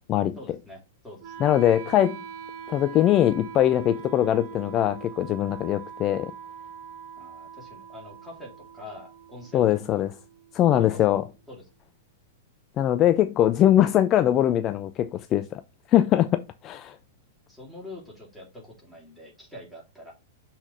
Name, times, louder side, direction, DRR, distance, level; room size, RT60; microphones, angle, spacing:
voice 1, 0.3-1.5 7.2-9.7 9.9-10.0 10.7-11.2 11.5-11.6 17.5-20.1, left 1 dB, ahead, 2.8 m, -45 dB
Wind instrument woodwind instrument, 1.2-11.2, right 7 dB, 45° right, 0.9 m, -43 dB
voice 2, 1.4-2.2 2.7-6.3 9.5-10.1 10.5-11.2 12.8-15.6 15.9-17.0, left 12 dB, 30° left, 0.4 m, -22 dB
5.9 x 4.0 x 5.2 m
figure-of-eight pair, 100°, 0 cm